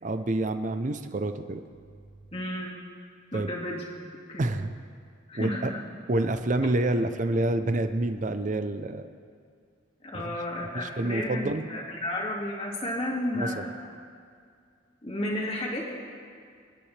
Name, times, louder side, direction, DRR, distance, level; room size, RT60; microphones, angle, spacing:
voice 1, 0.0-1.6 3.3-3.5 4.4-4.7 5.3-5.7 6.1-9.1 10.3-10.4 10.7-11.7 13.3-13.7, right 2 dB, 40° right, 9 dB, 0.6 m, -28 dB
voice 2, 2.3-2.8 3.3-4.6 5.3-5.8 10.0-13.9 15.0-15.9, left 1 dB, 30° left, -2 dB, 2.3 m, -33 dB
29.0 x 10.0 x 3.4 m, 2.2 s
head